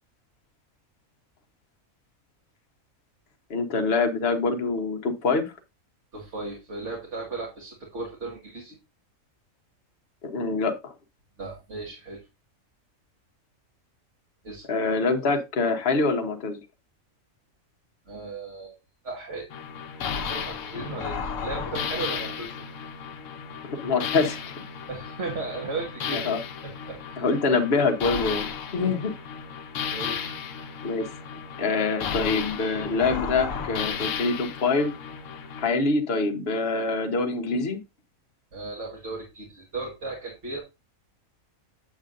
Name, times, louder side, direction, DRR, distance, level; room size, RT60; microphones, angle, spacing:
voice 1, 3.5-5.5 10.2-10.9 14.7-16.6 23.8-24.4 26.1-26.4 27.2-29.1 30.8-31.1 31.6-34.9 35.6-37.8, left 4 dB, 50° left, 5 dB, 1.3 m, -25 dB
voice 2, 6.1-8.8 11.4-12.2 14.4-14.7 18.1-18.8 19.0-19.5 20.3-22.6 24.9-26.3 26.6-27.3 29.9-30.4 38.5-40.6, right 3 dB, 55° right, -1 dB, 2.1 m, -36 dB
sound 1, 19.5-35.7, left 7 dB, 70° left, 1.2 m, -34 dB
8.5 x 7.9 x 2.6 m, 0.25 s
omnidirectional pair, 1.4 m